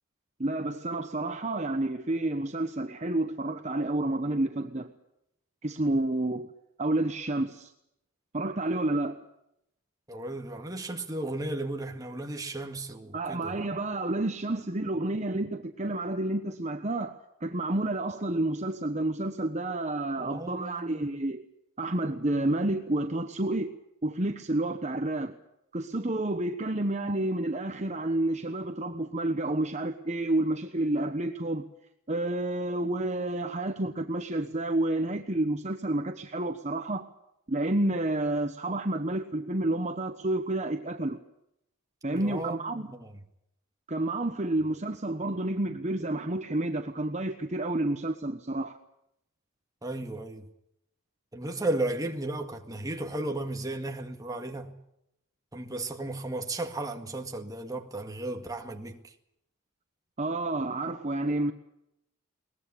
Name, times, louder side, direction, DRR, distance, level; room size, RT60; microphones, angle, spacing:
voice 1, 0.4-4.9 5.6-6.5 6.8-7.7 8.3-9.2 13.1-21.4 21.8-23.7 24.0-25.3 25.7-31.6 32.1-37.1 37.5-41.2 42.0-42.9 43.9-48.8 60.2-61.5, right 1 dB, 30° right, 1.1 m, -30 dB
voice 2, 10.1-13.5 20.2-21.1 42.1-43.1 49.8-50.5 51.3-54.7 55.5-59.0, right 2 dB, 15° right, 1.8 m, -34 dB
21.5 x 20.0 x 8.6 m
head